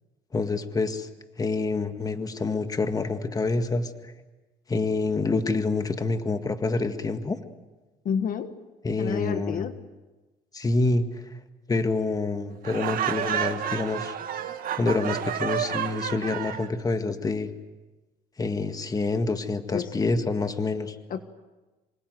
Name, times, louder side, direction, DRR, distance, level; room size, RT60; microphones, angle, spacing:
voice 1, 0.3-1.1 1.4-4.1 4.7-7.4 8.8-9.7 10.5-11.2 11.7-14.2 14.8-17.5 18.4-21.0, left 3 dB, 20° left, 8 dB, 1.9 m, -27 dB
voice 2, 8.0-8.5 9.0-9.7 19.7-20.1 21.1-21.2, left 7 dB, 55° left, 9 dB, 1.6 m, -29 dB
Laughter, 12.6-16.7, right 9 dB, 60° right, 2.0 m, -30 dB
26.0 x 25.5 x 7.9 m, 1.2 s
cardioid pair, 110°, 17 cm